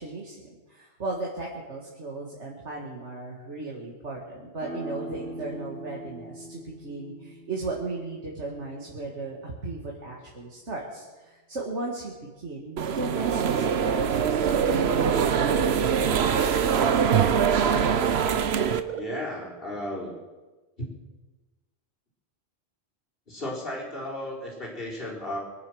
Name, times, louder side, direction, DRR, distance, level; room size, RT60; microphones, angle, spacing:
voice 1, 0.0-16.1, right 2 dB, 85° right, -3 dB, 2.4 m, -36 dB
sound 1, 4.6-10.0, equal, 80° left, 3.9 m, -42 dB
sound 2, 12.8-18.8, right 7 dB, 70° right, 1.1 m, -23 dB
sound 3, 14.2-19.2, right 10 dB, 45° right, 0.8 m, -34 dB
voice 2, 18.9-20.1 20.8-20.9 23.3-25.4, left 1 dB, 55° left, -4 dB, 4.6 m, -34 dB
24.0 x 9.4 x 6.4 m, 1.2 s
omnidirectional pair, 1.1 m